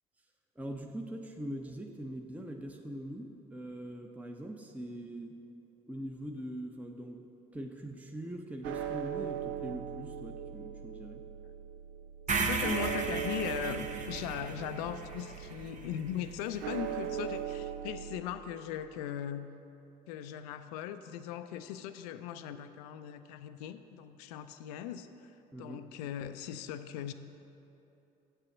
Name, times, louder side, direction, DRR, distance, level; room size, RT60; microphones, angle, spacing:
voice 1, 0.6-5.3 5.9-7.2 7.5-11.2 25.5-25.9, right 1 dB, 5° right, 3 dB, 0.8 m, -42 dB
sound 1, 8.6-18.2, right 9 dB, 75° right, 0.6 m, -40 dB
voice 2, 12.3-19.5 20.1-25.3 25.6-27.1, left 10 dB, 90° left, 10 dB, 0.4 m, -39 dB
sound 2, 12.3-16.4, right 4 dB, 40° right, 1.0 m, -35 dB
7.9 x 6.7 x 7.2 m, 2.9 s
hypercardioid pair, 60°, 20 cm